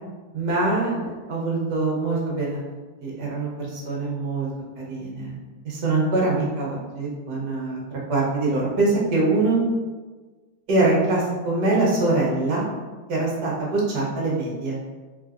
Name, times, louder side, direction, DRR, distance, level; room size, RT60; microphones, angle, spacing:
voice 1, 0.3-2.6 3.0-4.5 4.8-5.4 5.6-7.8 8.1-9.6 10.7-12.6 13.1-14.8, right 2 dB, 70° right, -4 dB, 1.5 m, -23 dB
3.8 x 3.4 x 2.5 m, 1.3 s
omnidirectional pair, 1.9 m